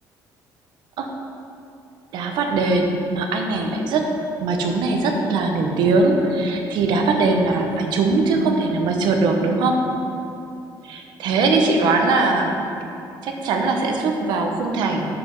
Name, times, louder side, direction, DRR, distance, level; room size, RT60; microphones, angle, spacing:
voice 1, 2.1-4.1 4.4-9.8 10.8-12.5 13.2-15.1, right 3 dB, 65° right, 3 dB, 1.1 m, -21 dB
12.5 x 5.0 x 5.4 m, 2.7 s
cardioid pair, 180°, 8 cm